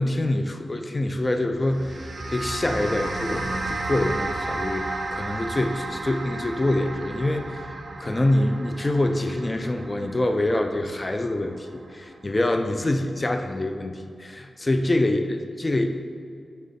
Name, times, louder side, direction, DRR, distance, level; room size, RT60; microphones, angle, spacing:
voice 1, 0.0-7.6 8.0-15.9, left 1 dB, 20° left, 5 dB, 0.3 m, -25 dB
sound 1, 1.6-12.1, right 2 dB, 40° right, 0.5 m, -33 dB
9.1 x 3.1 x 4.1 m, 2.4 s
wide cardioid pair, 165°, 0 cm